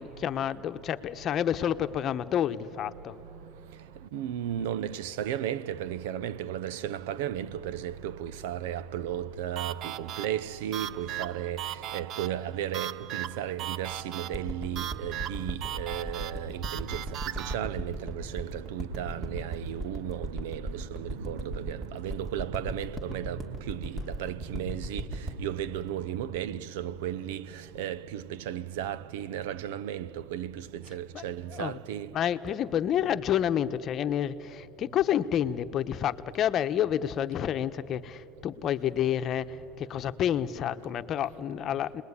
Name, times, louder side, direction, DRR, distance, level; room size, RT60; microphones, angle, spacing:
voice 1, 0.0-3.2 31.1-31.2 31.5-31.8 32.1-42.0, left 10 dB, 45° left, 1.0 m, -29 dB
voice 2, 4.1-11.6 11.9-17.0 17.4-23.4 23.7-25.0 25.4-27.5 27.8-30.6 30.9-32.1, right 10 dB, 85° right, 0.8 m, -34 dB
sound 1, 9.5-17.6, right 12 dB, 50° right, 0.7 m, -38 dB
sound 2, 14.3-27.1 27.7-27.8, right 1 dB, 25° right, 3.0 m, -37 dB
29.5 x 20.5 x 9.8 m
supercardioid pair, 120°, 0 cm